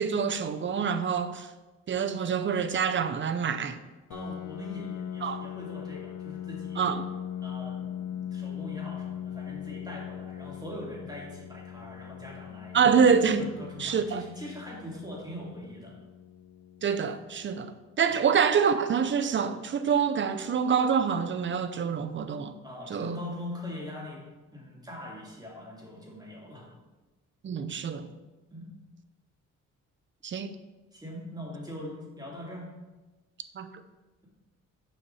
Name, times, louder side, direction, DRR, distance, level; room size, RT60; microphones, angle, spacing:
voice 1, 0.0-1.5 1.9-3.8 5.2-5.4 6.8-7.1 12.7-13.4 13.8-14.2 16.8-17.7 18.0-22.5 22.9-23.1 27.4-28.1 30.2-30.5 33.6-33.7, right 6 dB, 40° right, 0.7 m, -26 dB
Piano, 4.1-19.5, left 10 dB, 85° left, 0.6 m, -40 dB
voice 2, 4.1-6.9 7.4-12.8 13.4-15.9 18.1-18.2 22.6-24.2 24.5-26.7 28.5-28.7 30.9-32.7, equal, 15° right, 2.8 m, -42 dB
7.3 x 5.6 x 4.8 m
cardioid pair, 90°, 30 cm